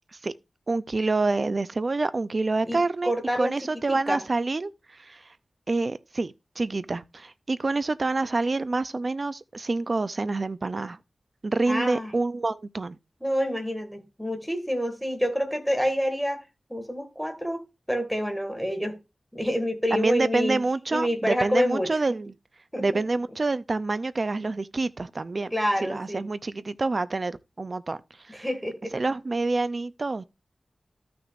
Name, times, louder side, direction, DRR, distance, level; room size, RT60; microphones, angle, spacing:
voice 1, 0.7-4.7 5.0-5.2 5.7-11.0 11.4-13.0 19.9-22.3 22.8-25.5 25.8-28.0 28.3-28.5 28.9-30.2, right 3 dB, 45° right, 0.5 m, -27 dB
voice 2, 2.7-3.5 3.9-4.2 11.7-12.1 13.2-16.4 16.7-19.0 19.3-20.6 20.9-22.0 22.7-23.0 25.5-26.2 28.3-28.9, equal, ahead, 1.9 m, -28 dB
14.0 x 5.9 x 2.5 m
wide cardioid pair, 95°, 0 cm